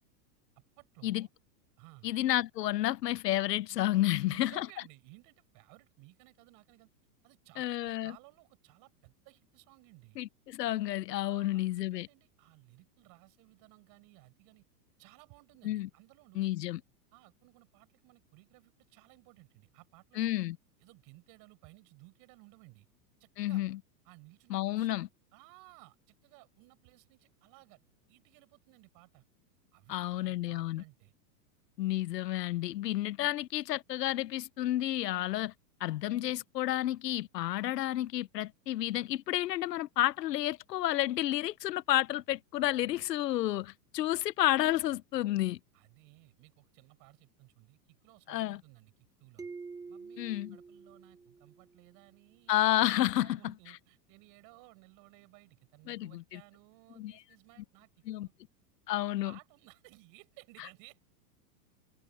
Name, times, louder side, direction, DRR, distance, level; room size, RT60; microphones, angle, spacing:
voice 1, 0.8-1.3 1.8-2.1 4.0-6.9 7.2-10.2 11.3-14.6 15.0-16.5 17.1-20.5 20.8-22.9 23.2-23.6 24.0-25.0 25.3-29.2 29.7-31.1 45.7-48.9 49.2-49.5 49.9-52.7 53.0-58.3 59.0-61.1, right 27 dB, 40° right, 6.9 m, -58 dB
voice 2, 2.0-4.7 7.6-8.1 10.2-12.1 15.6-15.9 16.3-16.8 20.2-20.6 23.4-23.8 24.5-25.1 29.9-30.8 31.8-35.5 35.8-45.6 48.3-48.6 50.2-50.6 52.5-53.4 55.9-56.4 57.0-57.1 58.1-58.3 58.9-59.3, left 14 dB, 85° left, 1.1 m, -31 dB
sound 1, 49.4-51.9, right 4 dB, 5° right, 1.3 m, -47 dB
open air
supercardioid pair, 150°, 47 cm